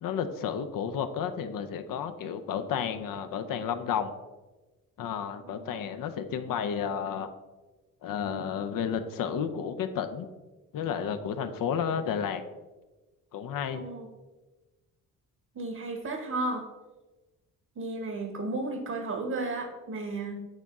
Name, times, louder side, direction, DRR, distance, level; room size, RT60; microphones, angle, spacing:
voice 1, 0.0-4.1 5.0-7.3 8.0-10.3 10.7-12.4 13.3-13.8, left 7 dB, 65° left, 9 dB, 0.6 m, -32 dB
voice 2, 13.7-14.1 15.5-16.6 17.8-20.4, right 2 dB, 45° right, 4 dB, 1.0 m, -33 dB
8.9 x 3.0 x 3.5 m, 1.2 s
supercardioid pair, 65°, 36 cm